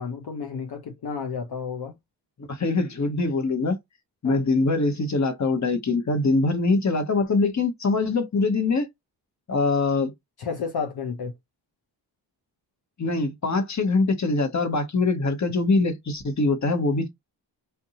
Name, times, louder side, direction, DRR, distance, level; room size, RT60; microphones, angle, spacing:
voice 1, 0.0-2.0 4.2-4.4 10.4-11.3, left 5 dB, 60° left, 0.7 m, -31 dB
voice 2, 2.5-3.8 4.2-8.9 9.5-10.1 13.0-17.1, left 3 dB, 40° left, 1.0 m, -23 dB
2.6 x 2.2 x 2.7 m
cardioid pair, 55°, 44 cm